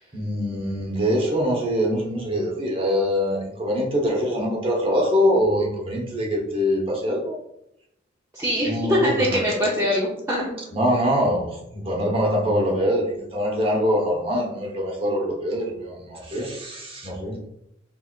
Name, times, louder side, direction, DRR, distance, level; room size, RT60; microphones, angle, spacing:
voice 1, 0.1-7.4 8.6-9.7 10.7-17.4, equal, 30° right, -2 dB, 1.0 m, -24 dB
voice 2, 8.3-10.5, equal, 15° right, -7 dB, 0.7 m, -23 dB
4.5 x 3.3 x 2.4 m, 0.78 s
head